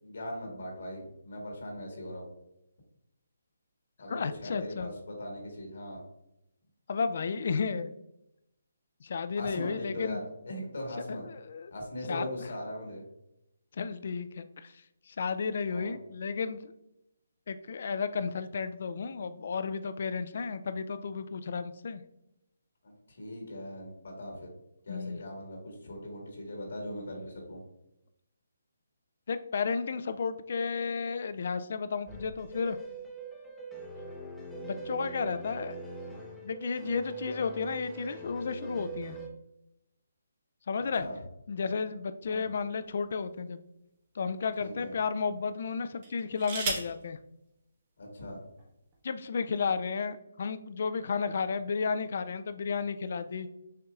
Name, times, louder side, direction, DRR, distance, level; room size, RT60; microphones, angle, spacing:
voice 1, 0.0-2.3 4.0-6.0 9.4-11.2 11.7-13.0 15.7-15.9 22.8-24.5 24.9-27.6 41.0-41.1 42.3-42.4 44.6-44.9 48.0-48.4, left 1 dB, 75° left, 0 dB, 1.5 m, -40 dB
voice 2, 4.1-4.9 6.9-7.9 9.0-10.2 11.1-11.7 12.0-12.3 13.7-16.7 17.5-22.0 24.9-25.2 29.3-32.8 34.6-35.8 36.4-39.2 40.7-41.1 41.5-43.6 44.1-47.2 49.0-53.5, left 5 dB, 55° left, 11 dB, 0.3 m, -33 dB
sound 1, 32.1-39.3, right 3 dB, 5° left, 0.6 m, -42 dB
sound 2, 42.2-43.4 44.2-44.3 46.0-47.0 48.2-48.3 48.6-49.0, right 4 dB, 35° right, 1.0 m, -37 dB
6.6 x 2.8 x 2.3 m, 0.86 s
hypercardioid pair, 160°, 0 cm